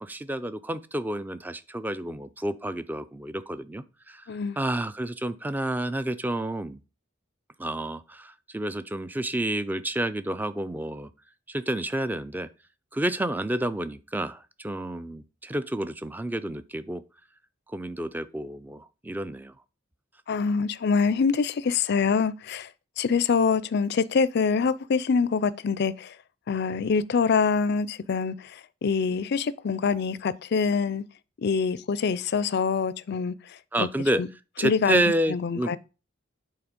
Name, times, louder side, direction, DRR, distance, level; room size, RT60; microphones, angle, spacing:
voice 1, 0.0-4.3 4.6-6.8 7.6-11.1 11.5-12.5 12.9-17.0 17.7-19.5 33.7-34.2 34.6-35.8, right 1 dB, 10° right, 0.4 m, -29 dB
voice 2, 20.3-22.7 23.0-26.1 26.5-28.3 28.8-31.0 31.4-33.3 33.8-33.9 34.2-34.3 34.6-35.0 35.3-35.8, left 5 dB, 55° left, 0.4 m, -25 dB
8.6 x 4.0 x 5.1 m
head